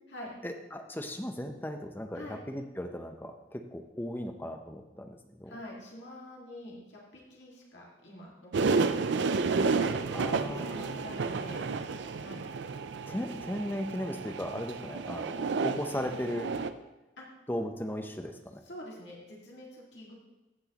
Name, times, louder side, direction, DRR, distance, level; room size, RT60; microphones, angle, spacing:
voice 1, 0.4-5.6 10.1-10.9 13.1-16.5 17.5-18.6, equal, 10° left, 5 dB, 0.6 m, -37 dB
voice 2, 5.5-8.9 9.2-11.6 12.2-12.5 13.2-13.4 17.2-17.3 18.6-20.1, left 1 dB, 75° left, -3 dB, 1.9 m, -46 dB
sound 1, 8.5-16.7, right 4 dB, 75° right, 0.4 m, -31 dB
15.0 x 6.1 x 2.9 m, 1.1 s
head